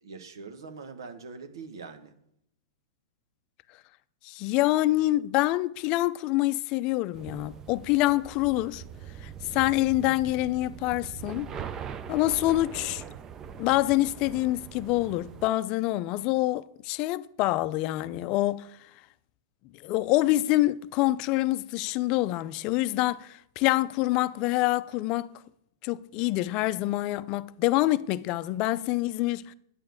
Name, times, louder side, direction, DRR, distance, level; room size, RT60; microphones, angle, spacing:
voice 1, 0.0-2.1, right 4 dB, 90° right, 1.4 m, -43 dB
voice 2, 4.2-8.8 9.2-11.5 12.1-13.0 13.6-18.7 19.8-25.3 25.8-29.5, left 17 dB, 35° left, 0.5 m, -26 dB
sound 1, 7.1-15.5, right 8 dB, 20° right, 0.6 m, -42 dB
9.5 x 8.9 x 6.4 m
hypercardioid pair, 145°, 2 cm